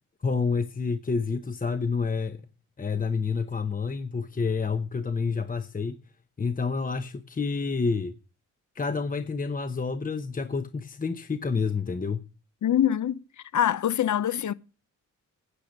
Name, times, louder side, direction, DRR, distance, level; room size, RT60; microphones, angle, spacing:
voice 1, 0.2-2.5 2.8-6.0 6.4-8.1 8.7-12.2, left 4 dB, 25° left, 0.9 m, -28 dB
voice 2, 12.6-13.2 13.5-14.5, left 10 dB, 65° left, 0.8 m, -24 dB
10.0 x 8.6 x 6.5 m
cardioid pair, 85°, 32 cm